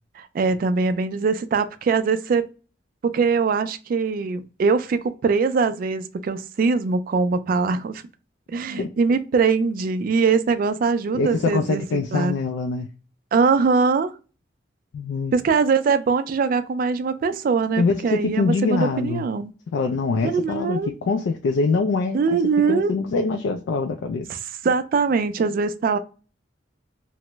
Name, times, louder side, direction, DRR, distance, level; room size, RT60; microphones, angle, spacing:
voice 1, 0.2-2.4 3.0-8.0 8.5-11.8 12.1-12.3 13.3-14.1 15.3-19.5 20.2-20.9 22.1-22.9 24.6-26.0, right 5 dB, 50° right, 0.3 m, -22 dB
voice 2, 11.1-12.9 14.9-15.3 17.8-19.3 19.7-22.4 22.7-24.3, left 4 dB, 85° left, 0.3 m, -24 dB
2.9 x 2.0 x 3.3 m
head